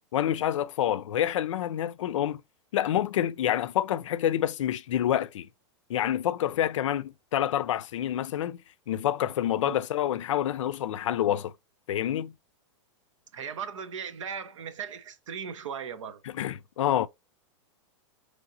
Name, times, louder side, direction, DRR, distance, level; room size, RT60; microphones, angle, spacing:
voice 1, 0.1-2.4 2.7-5.5 5.9-8.6 8.9-11.5 11.9-12.3 16.2-17.1, left 11 dB, 85° left, 0.4 m, -27 dB
voice 2, 13.3-16.2, right 7 dB, 90° right, 0.7 m, -37 dB
4.8 x 3.3 x 2.6 m
hypercardioid pair, 130°, 16 cm